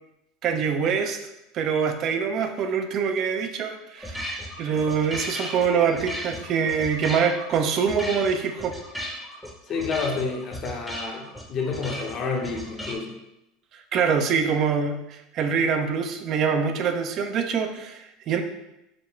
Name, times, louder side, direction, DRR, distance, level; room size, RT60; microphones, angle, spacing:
voice 1, 0.4-1.2 1.5-4.2 4.6-8.7 13.9-18.4, right 6 dB, 50° right, 6 dB, 0.5 m, -24 dB
sound 1, 4.0-12.9, equal, ahead, 0.8 m, -36 dB
voice 2, 9.7-13.1, left 4 dB, 45° left, 1 dB, 0.8 m, -29 dB
5.0 x 2.3 x 3.1 m, 0.88 s
hypercardioid pair, 95°, 0 cm